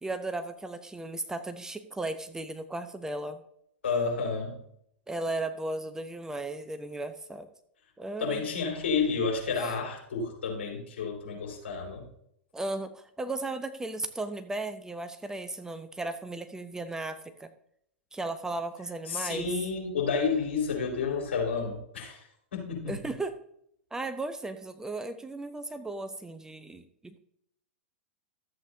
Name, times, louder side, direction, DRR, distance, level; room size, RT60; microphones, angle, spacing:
voice 1, 0.0-3.4 5.1-7.5 8.0-8.5 12.5-17.5 18.1-19.5 22.9-23.4 23.9-27.2, right 2 dB, 10° right, 9 dB, 0.7 m, -36 dB
voice 2, 3.8-4.6 8.2-12.1 19.1-23.0, left 5 dB, 70° left, -1 dB, 4.1 m, -30 dB
13.5 x 8.0 x 2.7 m, 0.72 s
hypercardioid pair, 100°, 6 cm